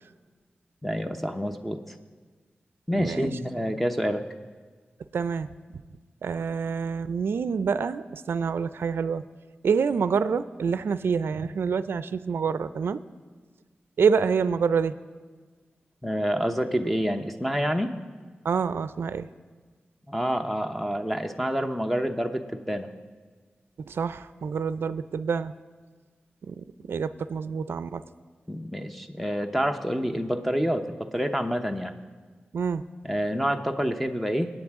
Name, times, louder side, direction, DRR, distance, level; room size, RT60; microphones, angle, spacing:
voice 1, 0.8-1.9 2.9-4.2 16.0-17.9 20.1-22.9 28.5-31.9 33.0-34.5, equal, 5° left, 6 dB, 0.9 m, -28 dB
voice 2, 2.9-3.3 5.1-5.8 6.2-9.2 9.6-13.0 14.0-15.0 18.4-19.3 23.9-25.5 26.4-28.0 32.5-32.8, right 6 dB, 85° right, 14 dB, 0.4 m, -27 dB
23.0 x 8.8 x 3.6 m, 1.4 s
cardioid pair, 50°, 4 cm